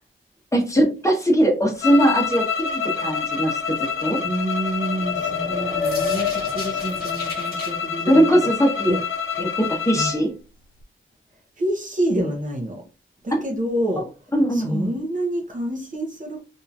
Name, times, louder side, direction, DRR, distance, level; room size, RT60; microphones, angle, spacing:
voice 1, 0.5-3.7 4.0-4.2 8.1-9.0 9.4-10.3 14.3-14.9, right 1 dB, 15° left, 1.0 m, -20 dB
sound 1, 1.8-10.2, left 6 dB, 75° left, 0.5 m, -27 dB
voice 2, 4.2-8.4 8.9-9.0 9.9-10.2 11.6-12.8 13.2-14.1 14.5-16.4, right 1 dB, 40° right, 0.7 m, -27 dB
sound 2, 4.4-7.7, left 6 dB, 45° left, 1.1 m, -28 dB
2.8 x 2.6 x 2.4 m
cardioid pair, 75°, 21 cm